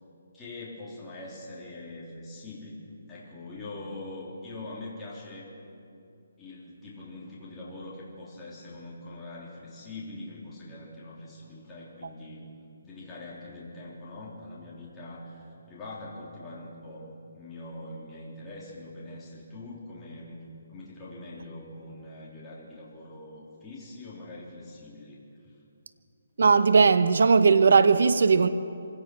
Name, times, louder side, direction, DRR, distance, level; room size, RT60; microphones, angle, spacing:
voice 1, 0.3-2.8 3.1-5.5 6.4-12.5 12.8-17.1 17.3-20.4 20.7-25.2, left 2 dB, 10° left, 3.4 m, -43 dB
voice 2, 26.4-28.5, right 5 dB, 70° right, 1.0 m, -18 dB
25.5 x 17.5 x 6.1 m
hypercardioid pair, 165°, 0 cm